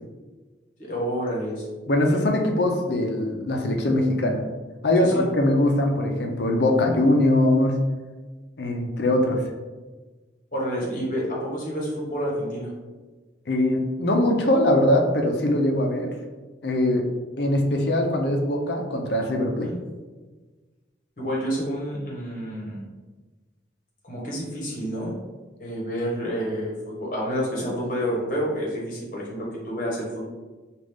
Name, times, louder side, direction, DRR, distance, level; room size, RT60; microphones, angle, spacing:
voice 1, 0.8-1.7 5.0-5.2 10.5-12.7 19.6-19.8 21.2-22.8 24.0-25.1 25.6-30.3, equal, 45° left, -4 dB, 1.2 m, -29 dB
voice 2, 1.9-4.4 4.8-7.8 8.6-9.4 13.5-16.1 16.6-17.1 17.4-19.7, left 1 dB, 65° left, 2 dB, 0.6 m, -22 dB
5.0 x 2.4 x 3.5 m, 1.3 s
head